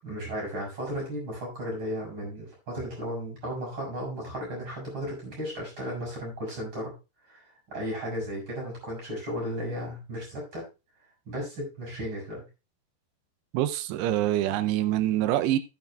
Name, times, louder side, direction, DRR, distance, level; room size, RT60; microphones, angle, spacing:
voice 1, 0.0-6.9 7.3-7.4 7.7-10.6 11.3-12.4, equal, 30° right, -2 dB, 7.3 m, -34 dB
voice 2, 13.5-15.6, right 13 dB, 85° right, 13 dB, 2.8 m, -25 dB
14.5 x 9.0 x 2.4 m, 0.28 s
omnidirectional pair, 4.8 m